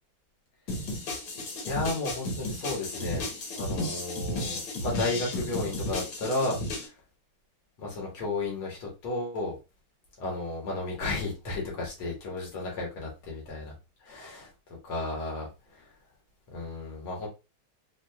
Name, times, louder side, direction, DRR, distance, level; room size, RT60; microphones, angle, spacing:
sound 1, 0.7-6.9, left 1 dB, 70° left, 1.7 m, -34 dB
voice 1, 1.7-3.3 3.6-6.9 7.8-9.6 10.2-13.8 14.0-14.5 14.8-15.9 16.5-17.3, left 2 dB, 90° left, -2 dB, 2.3 m, -33 dB
5.0 x 2.2 x 2.2 m, 0.27 s
omnidirectional pair, 2.2 m